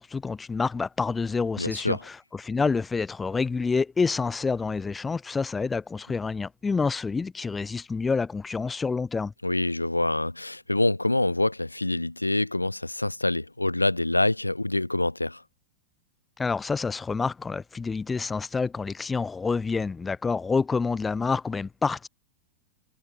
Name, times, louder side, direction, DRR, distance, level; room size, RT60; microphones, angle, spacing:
voice 1, 0.0-9.3 16.4-22.1, left 4 dB, 15° left, 0.3 m, -28 dB
voice 2, 1.6-2.0 9.4-15.4, left 2 dB, 85° left, 0.4 m, -26 dB
figure-of-eight pair, 95°, 0 cm